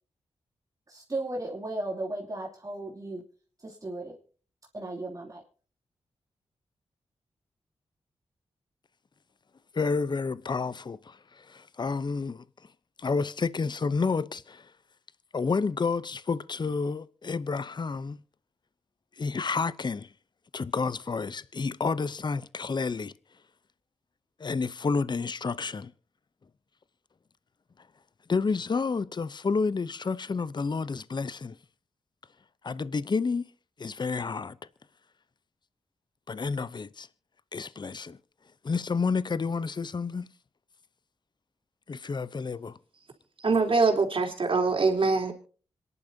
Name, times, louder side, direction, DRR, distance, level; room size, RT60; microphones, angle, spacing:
voice 1, 0.9-3.2 3.6-4.2 4.7-5.4, right 2 dB, 30° right, 2.9 m, -35 dB
voice 2, 9.7-12.4 13.0-14.7 15.3-18.2 19.2-20.1 20.5-23.1 24.4-25.9 28.3-31.6 32.6-33.4 33.8-34.6 36.3-37.1 37.5-38.2 38.6-40.3 41.9-42.8, left 4 dB, 40° left, 0.7 m, -30 dB
voice 3, 43.4-45.3, right 4 dB, 55° right, 3.6 m, -24 dB
26.0 x 11.0 x 2.8 m
cardioid pair, 45°, 11 cm